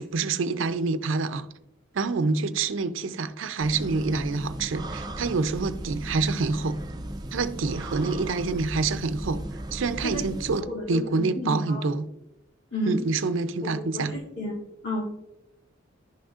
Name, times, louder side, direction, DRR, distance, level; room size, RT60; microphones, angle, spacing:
voice 1, 0.0-1.5 1.9-6.8 7.3-9.4 9.7-12.0 12.8-14.1, right 4 dB, 70° right, 0.5 m, -27 dB
sound 1, 3.6-10.6, right 1 dB, 20° right, 0.5 m, -36 dB
voice 2, 10.6-11.9 12.7-13.1 13.6-14.5 14.8-15.0, left 1 dB, 65° left, 2.5 m, -32 dB
11.0 x 6.3 x 2.4 m
head